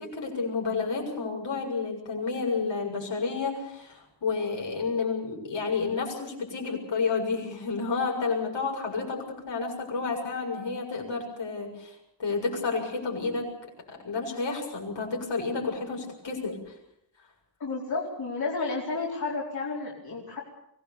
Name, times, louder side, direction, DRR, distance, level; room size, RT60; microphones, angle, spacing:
voice 1, 0.0-11.9 12.2-13.5 13.9-16.6, left 4 dB, 80° left, 0 dB, 7.2 m, -30 dB
voice 2, 17.6-20.4, left 3 dB, 55° left, -4 dB, 4.6 m, -31 dB
24.5 x 18.0 x 7.1 m, 0.79 s
wide cardioid pair, 130°, 43 cm